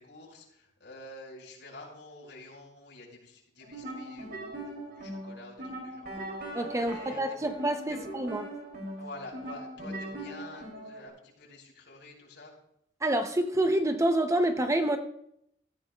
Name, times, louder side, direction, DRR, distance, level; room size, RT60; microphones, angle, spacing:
voice 1, 0.0-6.2 6.7-7.4 7.9-8.0 9.0-12.5, left 2 dB, 75° left, 5.6 m, -48 dB
sound 1, 3.6-11.1, right 1 dB, 60° right, 3.0 m, -40 dB
voice 2, 6.5-8.5 13.0-15.0, right 1 dB, 15° right, 0.7 m, -27 dB
16.5 x 15.0 x 2.3 m
head